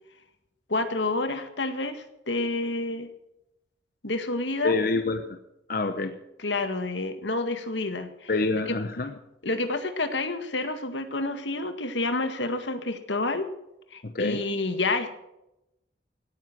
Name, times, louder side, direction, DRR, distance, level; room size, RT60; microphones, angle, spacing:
voice 1, 0.7-3.1 4.0-4.8 6.4-8.3 8.7-8.8 9.4-13.5 13.9-15.2, left 2 dB, 85° left, 8 dB, 1.8 m, -29 dB
voice 2, 4.6-5.4 5.7-6.1 8.3-9.1 14.0-14.4, left 3 dB, 55° left, 8 dB, 1.0 m, -27 dB
17.5 x 9.6 x 6.2 m, 0.86 s
head